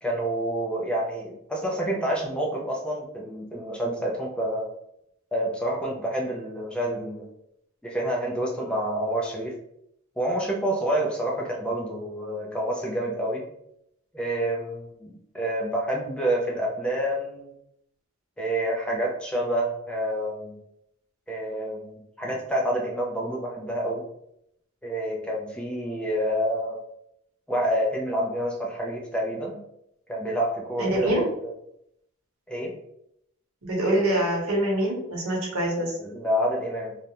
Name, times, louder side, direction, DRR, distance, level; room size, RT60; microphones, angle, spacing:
voice 1, 0.0-4.7 5.3-7.3 7.8-9.6 10.2-13.5 14.1-17.5 18.4-20.6 21.3-24.0 24.8-26.8 27.5-29.6 30.1-31.1 31.4-31.5 32.5-32.7 36.0-37.0, right 1 dB, 5° left, -2 dB, 0.3 m, -28 dB
voice 2, 30.8-31.2 33.6-36.0, right 1 dB, 75° right, -2 dB, 0.9 m, -25 dB
2.4 x 2.1 x 2.8 m, 0.76 s
head